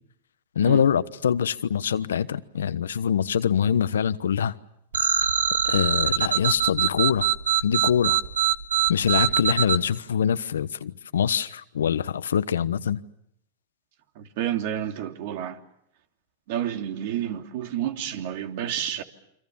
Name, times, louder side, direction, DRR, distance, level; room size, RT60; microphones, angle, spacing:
voice 1, 0.5-4.5 5.6-7.3 7.6-8.2 8.9-13.0, left 8 dB, 85° left, 1.1 m, -24 dB
sound 1, 4.9-9.8, right 10 dB, 85° right, 1.3 m, -23 dB
voice 2, 14.1-15.6 16.5-19.0, right 10 dB, 60° right, 3.0 m, -30 dB
28.5 x 25.5 x 7.3 m
hypercardioid pair, 115°, 0 cm